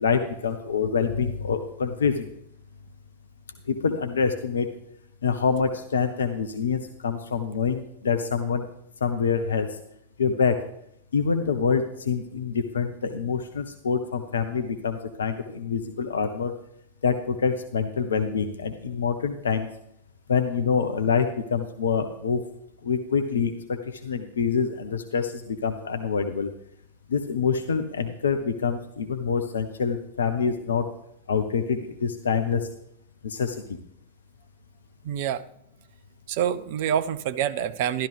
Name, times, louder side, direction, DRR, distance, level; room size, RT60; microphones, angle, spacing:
voice 1, 0.0-2.3 3.7-4.7 5.2-8.6 9.0-9.7 10.2-10.5 11.1-16.5 17.0-19.7 20.3-21.3 21.5-22.4 22.8-23.5 24.0-25.3 25.6-26.5 27.1-30.8 31.3-32.6 33.2-33.5, left 6 dB, 70° left, 8 dB, 0.8 m, -26 dB
voice 2, 35.0-35.4 36.3-38.1, right 9 dB, 50° right, 13 dB, 0.6 m, -26 dB
12.5 x 12.0 x 3.4 m, 0.73 s
figure-of-eight pair, 90°, 0 cm